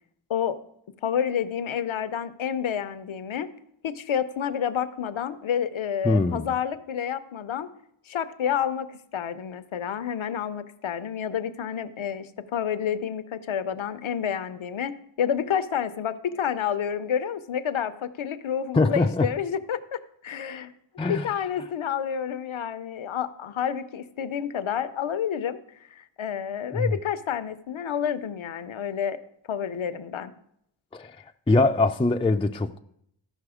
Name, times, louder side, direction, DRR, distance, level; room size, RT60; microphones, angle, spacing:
voice 1, 1.0-3.5 3.8-7.7 8.1-20.7 21.0-25.6 25.9-29.2 29.5-30.3, left 8 dB, 75° left, 0.7 m, -29 dB
voice 2, 6.0-6.5 18.7-19.3 21.0-21.3 26.7-26.9 30.9-31.2 31.5-32.8, left 3 dB, 10° left, 0.4 m, -22 dB
14.0 x 5.5 x 4.9 m
wide cardioid pair, 60°, 48 cm